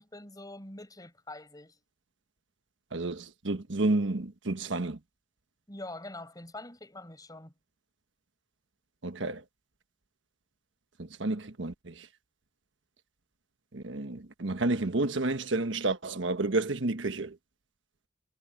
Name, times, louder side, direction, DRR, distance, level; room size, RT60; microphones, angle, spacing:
voice 1, 0.0-1.8 5.7-7.5, left 2 dB, 20° left, 6.3 m, -44 dB
voice 2, 2.9-5.0 9.0-9.4 11.0-12.1 13.7-17.4, right 2 dB, 80° right, 1.3 m, -30 dB
head